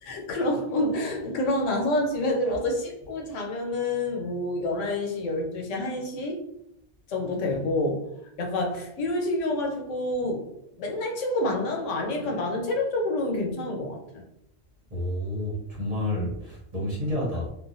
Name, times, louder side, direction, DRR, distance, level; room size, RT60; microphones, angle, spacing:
voice 1, 0.0-6.4 7.1-8.0 8.4-10.4 10.8-14.2, left 1 dB, 85° left, 1 dB, 1.0 m, -28 dB
voice 2, 14.9-17.5, left 1 dB, 35° right, -6 dB, 0.9 m, -30 dB
3.2 x 2.0 x 2.6 m, 0.78 s
omnidirectional pair, 1.2 m